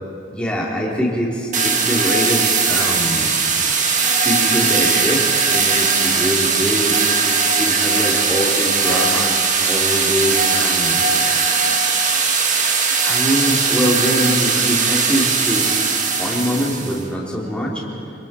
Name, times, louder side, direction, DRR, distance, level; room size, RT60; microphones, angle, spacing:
voice 1, 0.3-3.4 4.2-11.1 13.0-15.8 16.2-17.8, equal, 5° left, -4 dB, 3.4 m, -23 dB
sound 1, 1.5-17.0, right 5 dB, 40° right, 1.7 m, -19 dB
26.0 x 26.0 x 4.5 m, 2.6 s
head